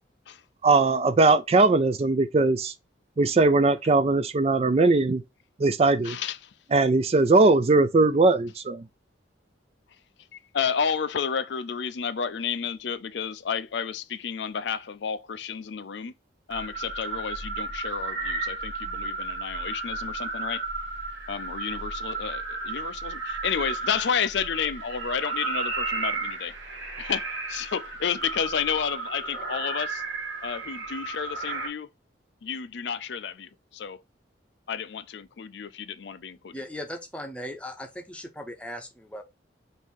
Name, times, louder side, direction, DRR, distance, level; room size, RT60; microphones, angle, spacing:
voice 1, 0.6-2.7 3.2-5.2 5.6-6.2 6.7-8.8, right 3 dB, 35° right, 0.4 m, -20 dB
voice 2, 6.0-6.5 10.3-16.1 16.5-20.6 21.3-26.5 27.0-30.0 30.4-31.9 32.4-34.0 34.7-36.6, left 7 dB, 70° left, 0.5 m, -31 dB
sound 1, 16.5-31.7, right 3 dB, 85° right, 1.8 m, -33 dB
voice 3, 36.5-39.2, left 1 dB, 5° left, 0.7 m, -38 dB
5.3 x 2.7 x 3.0 m
head